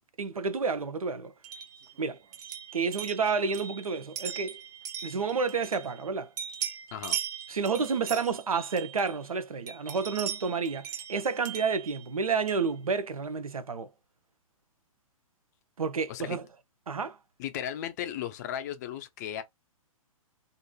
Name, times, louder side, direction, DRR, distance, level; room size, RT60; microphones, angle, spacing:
voice 1, 0.2-1.3 2.0-2.2 2.7-4.6 5.0-6.3 7.5-13.9 15.8-16.4 16.9-17.2, right 5 dB, 75° right, 0.5 m, -30 dB
sound 1, 1.4-6.1 6.4-9.3 9.7-12.7, right 9 dB, 30° right, 0.6 m, -39 dB
voice 2, 17.4-19.4, left 10 dB, 30° left, 0.4 m, -35 dB
2.8 x 2.5 x 2.2 m
figure-of-eight pair, 120°, 18 cm